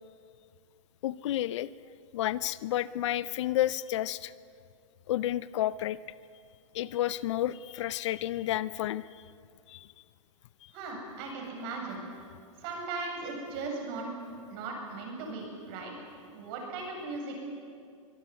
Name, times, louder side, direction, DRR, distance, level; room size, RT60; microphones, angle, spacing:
voice 1, 1.0-1.7 2.1-4.3 5.1-6.0 6.7-9.2 9.7-9.9, left 13 dB, 55° left, 18 dB, 0.7 m, -31 dB
voice 2, 10.7-12.0 12.6-14.1 14.5-15.9 16.3-17.4, right 3 dB, 45° right, 1 dB, 8.0 m, -38 dB
23.5 x 17.5 x 9.8 m, 2.3 s
hypercardioid pair, 135°, 18 cm